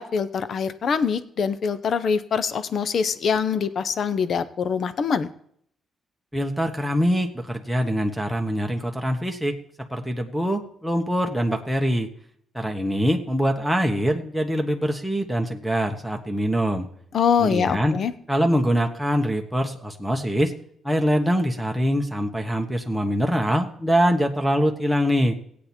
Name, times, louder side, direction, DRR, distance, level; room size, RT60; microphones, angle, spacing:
voice 1, 0.0-5.3 17.1-18.1, left 6 dB, 55° left, 14 dB, 0.8 m, -24 dB
voice 2, 6.3-9.6 9.9-12.1 12.5-16.9 17.4-18.0 18.3-20.5 20.8-25.3, equal, ahead, 2 dB, 1.3 m, -23 dB
16.5 x 8.4 x 4.4 m, 0.67 s
cardioid pair, 90°, 0 cm